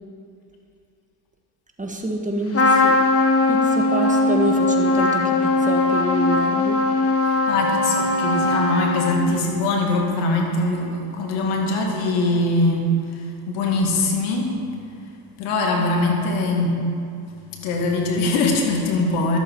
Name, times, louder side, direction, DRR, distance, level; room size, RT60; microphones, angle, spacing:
voice 1, 1.8-3.0 3.5-6.8, right 1 dB, 15° right, 1 dB, 1.5 m, -27 dB
Trumpet, 2.5-9.5, left 2 dB, 30° left, 1.3 m, -20 dB
voice 2, 7.2-12.9 13.1-14.5 15.4-16.8 17.6-19.4, left 2 dB, 85° left, 1 dB, 2.1 m, -22 dB
13.5 x 7.8 x 4.6 m, 2.4 s
supercardioid pair, 90°, 48 cm